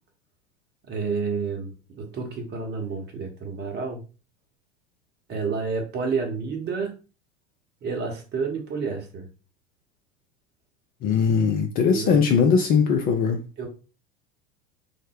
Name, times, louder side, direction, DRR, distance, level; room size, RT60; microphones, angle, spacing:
voice 1, 0.9-4.0 5.3-6.9 7.8-9.3 11.8-12.2 13.6-13.7, right 5 dB, 30° right, 1.0 m, -30 dB
voice 2, 11.0-13.4, left 6 dB, 30° left, 0.4 m, -20 dB
3.5 x 2.0 x 3.5 m
figure-of-eight pair, 80°, 33 cm